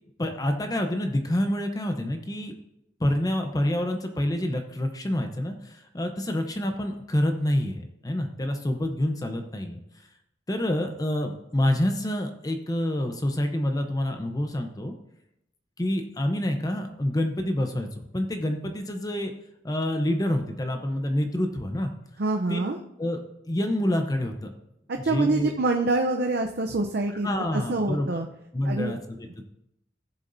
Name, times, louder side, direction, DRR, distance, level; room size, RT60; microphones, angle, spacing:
voice 1, 0.2-2.5 3.0-9.8 10.5-14.9 15.8-17.9 18.1-19.3 19.6-21.9 22.5-22.6 23.0-24.5 25.0-25.5 27.2-28.2 28.5-29.4, left 1 dB, 20° left, 5 dB, 0.7 m, -27 dB
voice 2, 22.2-22.8 24.9-27.3 27.5-28.3 28.7-29.0, right 2 dB, 65° right, 3 dB, 0.6 m, -26 dB
15.5 x 7.1 x 2.7 m, 0.81 s
head